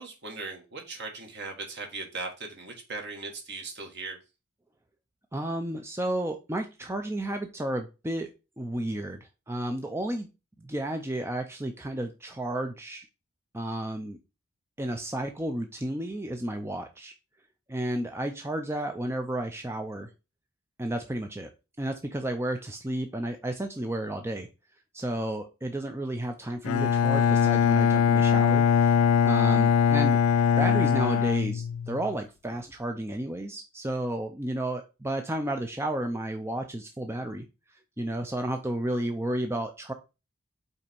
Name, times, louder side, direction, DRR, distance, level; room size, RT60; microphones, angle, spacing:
voice 1, 0.0-4.2, right 3 dB, 55° right, 3 dB, 1.8 m, -38 dB
voice 2, 5.3-8.3 8.6-10.3 10.6-13.1 13.5-14.2 14.8-17.1 17.7-20.1 20.8-21.5 21.8-24.5 24.9-28.9 29.2-30.2 30.6-37.5 38.0-39.9, right 1 dB, 10° right, 5 dB, 0.5 m, -32 dB
Bowed string instrument, 26.6-32.1, left 7 dB, 75° left, 0.3 m, -22 dB
5.5 x 4.2 x 5.3 m, 0.28 s
head